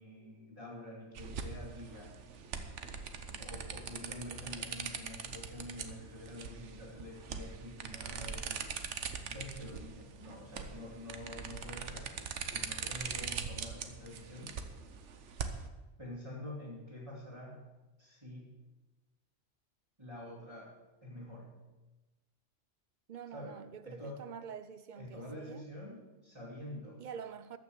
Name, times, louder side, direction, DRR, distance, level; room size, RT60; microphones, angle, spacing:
voice 1, 0.0-2.2 3.3-8.8 9.3-14.6 16.0-17.6 18.0-18.5 20.0-20.7 21.0-21.5 23.3-24.2 25.0-27.0, left 1 dB, 25° right, 2.4 m, -47 dB
sound 1, 1.2-15.7, right 6 dB, 75° right, 1.2 m, -42 dB
voice 2, 23.1-25.7 27.0-27.6, right 7 dB, 50° right, 0.6 m, -46 dB
14.0 x 6.1 x 7.7 m
omnidirectional pair, 1.2 m